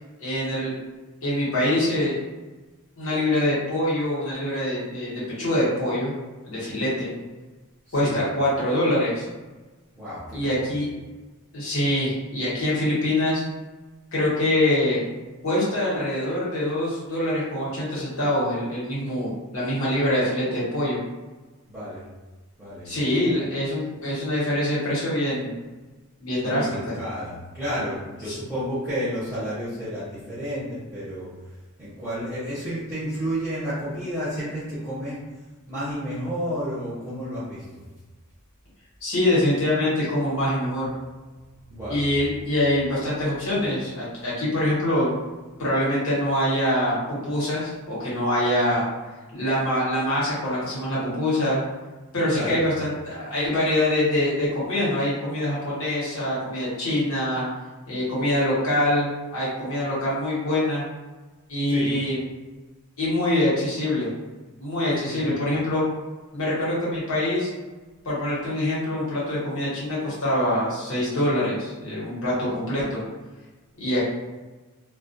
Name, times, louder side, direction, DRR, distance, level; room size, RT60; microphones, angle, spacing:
voice 1, 0.2-0.7 1.2-2.2 3.0-6.1 6.4-7.1 7.9-9.2 10.3-10.9 11.5-13.4 14.1-15.1 15.4-21.0 22.8-25.5 26.2-26.7 28.3-28.4 39.0-40.9 41.9-45.1 45.6-48.8 49.3-51.6 52.1-57.4 57.9-60.8 61.5-62.2 63.0-64.1 64.6-65.8 66.3-67.5 68.0-73.0 73.8-74.1, left 1 dB, 85° left, -7 dB, 1.1 m, -24 dB
voice 2, 7.9-8.2 9.9-10.7 21.7-22.1 22.6-22.9 26.4-31.3 31.8-35.2 35.7-37.9 41.7-42.0 52.3-52.6 61.7-62.0 65.1-65.3, equal, 10° right, -12 dB, 0.7 m, -31 dB
2.3 x 2.1 x 2.7 m, 1.2 s
head